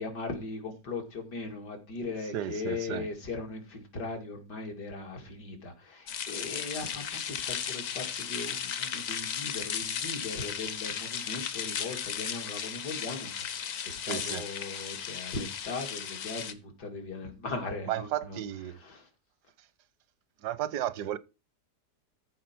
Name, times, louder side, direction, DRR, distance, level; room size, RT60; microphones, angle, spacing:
voice 1, 0.0-18.4 18.8-19.1, left 3 dB, 85° left, 3.0 m, -39 dB
voice 2, 2.3-3.1 14.1-14.4 17.9-18.8 20.4-21.2, right 12 dB, 85° right, 1.3 m, -33 dB
sound 1, 6.1-16.5, left 8 dB, 60° left, 1.2 m, -35 dB
13.5 x 4.6 x 5.9 m
omnidirectional pair, 1.7 m